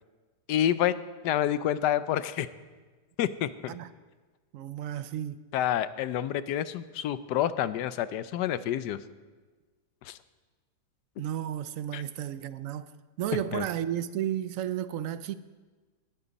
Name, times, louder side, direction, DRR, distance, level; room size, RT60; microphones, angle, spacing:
voice 1, 0.5-0.9 1.2-2.5 3.2-3.8 5.5-9.0 10.0-10.2 11.9-12.0 13.3-13.7, left 11 dB, 75° left, 1.2 m, -28 dB
voice 2, 4.5-5.4 11.2-12.9 13.2-15.3, right 11 dB, 70° right, 0.8 m, -33 dB
19.0 x 12.5 x 4.1 m
omnidirectional pair, 1.9 m